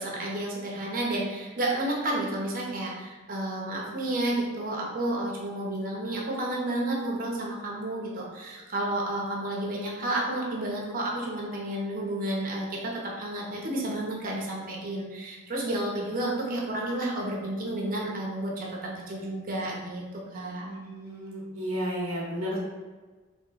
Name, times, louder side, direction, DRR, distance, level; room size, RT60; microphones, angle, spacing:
voice 1, 0.0-20.7, right 1 dB, 40° right, -3 dB, 0.9 m, -31 dB
voice 2, 20.6-22.6, equal, 70° right, -3 dB, 1.0 m, -33 dB
3.1 x 3.0 x 4.6 m, 1.3 s
head